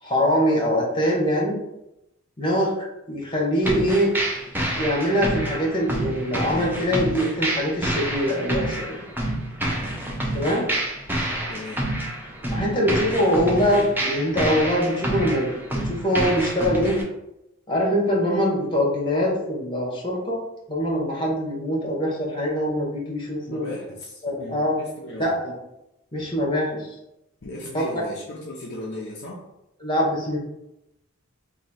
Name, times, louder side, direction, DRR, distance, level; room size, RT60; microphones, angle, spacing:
voice 1, 0.0-1.6 2.4-2.7 3.1-4.1 4.7-8.9 10.3-10.6 12.5-15.5 15.8-17.0 17.7-20.4 20.7-23.7 24.2-24.8 25.2-25.5 26.1-26.9 27.7-27.8 29.8-30.4, equal, 20° left, -4 dB, 1.2 m, -23 dB
sound 1, 3.6-17.0, right 1 dB, 10° right, 0.6 m, -28 dB
voice 2, 11.5-11.9 23.5-25.4 27.4-29.4, left 1 dB, 50° left, -3 dB, 0.6 m, -37 dB
3.1 x 2.7 x 4.1 m, 0.87 s
head